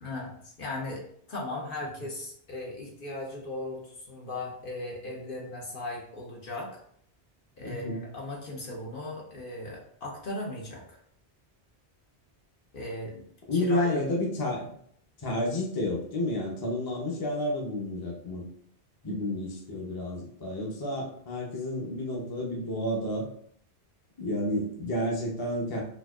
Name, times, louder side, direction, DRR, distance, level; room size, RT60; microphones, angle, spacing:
voice 1, 0.0-6.8 7.6-11.0 12.7-13.2 13.5-14.0, left 2 dB, 55° left, -2 dB, 0.9 m, -37 dB
voice 2, 7.6-8.0 13.5-14.7 15.2-18.5 19.0-23.3 24.2-25.8, left 1 dB, 25° left, -2 dB, 0.6 m, -30 dB
4.3 x 2.5 x 2.4 m, 0.63 s
omnidirectional pair, 1.1 m